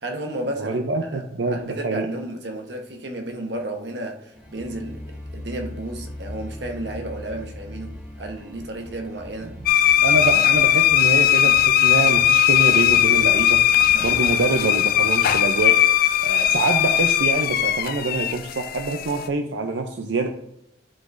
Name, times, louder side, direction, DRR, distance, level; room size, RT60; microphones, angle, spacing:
voice 1, 0.0-0.8 1.0-1.2 1.5-5.0 5.3-9.6 10.1-10.3 13.9-14.2, right 1 dB, 65° right, 1.1 m, -32 dB
voice 2, 0.6-2.1 10.0-13.6 14.0-15.8 16.2-20.3, right 3 dB, 85° right, 0.6 m, -25 dB
Tension building intro, 4.3-16.3, left 1 dB, 5° right, 1.1 m, -40 dB
sound 1, 9.7-19.3, left 11 dB, 55° left, 0.4 m, -18 dB
11.0 x 3.9 x 2.6 m
head